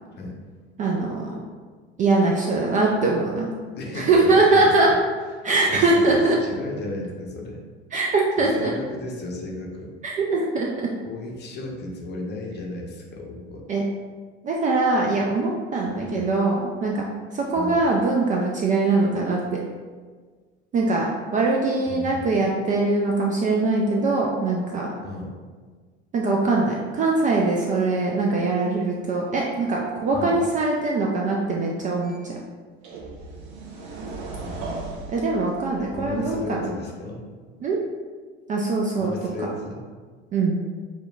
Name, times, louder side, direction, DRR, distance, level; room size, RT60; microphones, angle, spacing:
voice 1, 0.8-1.4 2.0-3.5 3.9-4.9 5.4-6.4 7.9-8.7 10.0-10.9 13.7-13.8 14.4-17.0 17.3-19.4 20.7-21.1 21.3-24.9 26.1-32.4 35.1-36.7 37.6-37.8 38.5-39.1 39.4-39.5 40.3-40.6, right 3 dB, 25° right, -2 dB, 0.3 m, -22 dB
voice 2, 3.7-4.7 5.6-7.6 8.4-9.9 11.0-13.6 16.0-16.3 17.5-17.8 21.9-22.4 25.0-25.3 30.1-30.4 34.2-34.7 35.9-37.2 39.0-39.8, left 2 dB, 30° left, 0 dB, 0.7 m, -34 dB
sound 1, 32.0-32.2 32.8-36.6, right 3 dB, 55° right, 0.7 m, -37 dB
5.1 x 2.2 x 2.3 m, 1.5 s
figure-of-eight pair, 70°, 33 cm